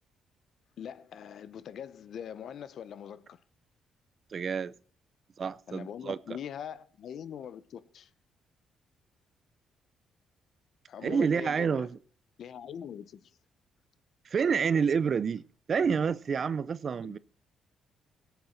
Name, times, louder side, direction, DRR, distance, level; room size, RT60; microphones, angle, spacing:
voice 1, 0.8-3.4 5.7-8.1 10.9-11.9 12.4-13.3 17.0-17.2, left 8 dB, 65° left, 0.7 m, -42 dB
voice 2, 4.3-4.7 5.4-6.2 11.0-11.9 14.3-15.4 15.7-17.2, right 6 dB, 45° right, 0.6 m, -28 dB
18.0 x 8.1 x 4.4 m
cardioid pair, 90°, 0 cm